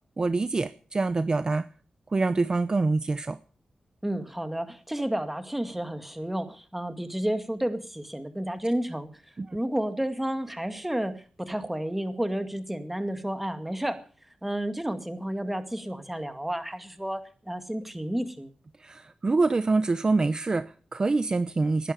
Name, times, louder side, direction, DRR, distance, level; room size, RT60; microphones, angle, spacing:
voice 1, 0.2-1.7 2.1-3.4 9.4-9.6 18.8-21.9, right 3 dB, 35° right, 12 dB, 0.8 m, -25 dB
voice 2, 4.0-9.2 9.5-14.0 14.4-18.5, right 1 dB, 5° right, 8 dB, 2.1 m, -31 dB
19.0 x 11.0 x 6.7 m, 0.40 s
wide cardioid pair, 115°, 2 cm